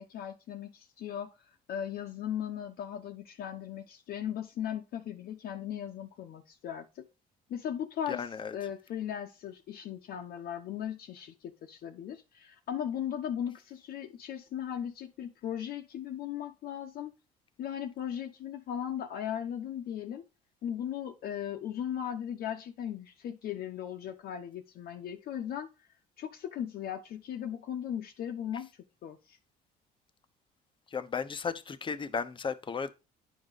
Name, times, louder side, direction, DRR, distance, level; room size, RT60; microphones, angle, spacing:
voice 1, 0.0-1.3 1.7-7.1 7.5-8.2 8.5-17.1 17.6-20.2 20.6-25.7 26.2-28.7 29.0-29.4, left 9 dB, 65° left, 1.0 m, -37 dB
voice 2, 8.1-8.6 30.9-32.9, left 5 dB, 30° left, 0.9 m, -35 dB
10.5 x 5.0 x 4.1 m
cardioid pair, 110°, 17 cm